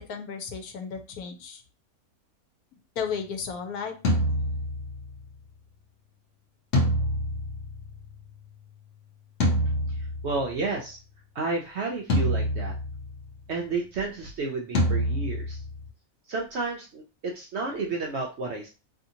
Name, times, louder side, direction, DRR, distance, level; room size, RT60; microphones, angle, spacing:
voice 1, 0.0-1.6 3.0-4.0 4.2-4.4, left 6 dB, 80° left, 6 dB, 1.1 m, -34 dB
sound 1, 4.0-5.2 6.7-8.3 9.4-10.6 12.1-13.3 14.7-15.9, equal, 60° left, 1.0 m, -26 dB
voice 2, 10.2-11.0 11.3-12.7 13.5-15.6 16.3-18.7, right 3 dB, 70° right, 0 dB, 0.7 m, -31 dB
2.8 x 2.7 x 2.6 m, 0.32 s
omnidirectional pair, 1.6 m